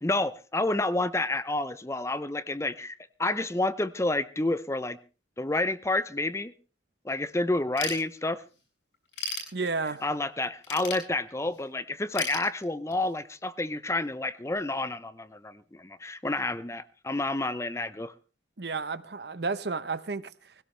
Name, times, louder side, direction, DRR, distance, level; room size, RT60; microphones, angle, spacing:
voice 1, 0.0-5.0 5.4-6.5 7.0-8.4 10.0-18.1, left 2 dB, 15° left, 0.7 m, -29 dB
Ratchet pawl / Tools, 7.8-8.6 8.9-10.1 10.6-11.6 12.2-13.1, left 4 dB, 75° left, 7.0 m, -36 dB
voice 2, 9.5-10.1 18.6-20.5, right 4 dB, 60° right, 0.9 m, -32 dB
20.5 x 17.0 x 3.3 m
head